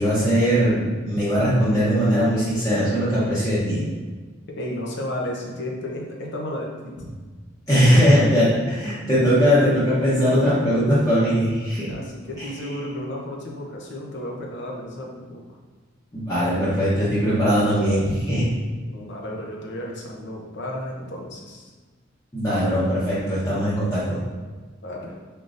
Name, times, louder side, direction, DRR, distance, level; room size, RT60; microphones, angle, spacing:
voice 1, 0.0-3.8 7.7-11.9 12.4-12.5 16.1-18.5 22.3-24.2, equal, 15° left, -11 dB, 0.9 m, -20 dB
voice 2, 4.6-7.0 7.9-9.0 11.9-15.6 18.9-21.7 24.8-25.2, left 1 dB, 55° left, -1 dB, 0.7 m, -33 dB
3.8 x 3.7 x 2.5 m, 1.4 s
head